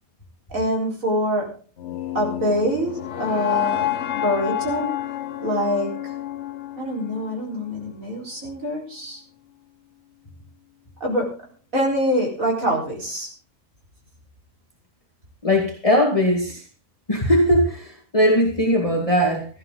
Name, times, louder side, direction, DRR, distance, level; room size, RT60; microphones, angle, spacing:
voice 1, 0.5-1.6 2.1-3.9 4.2-5.1 5.4-6.1 6.8-9.2 11.0-11.5 11.7-13.3, equal, 90° right, -1 dB, 4.9 m, -25 dB
sound 1, 1.8-7.9, left 12 dB, 60° left, 1.2 m, -29 dB
voice 2, 15.4-16.6 17.1-19.5, equal, 25° left, 0 dB, 2.3 m, -19 dB
16.5 x 13.0 x 3.9 m, 0.37 s
omnidirectional pair, 1.4 m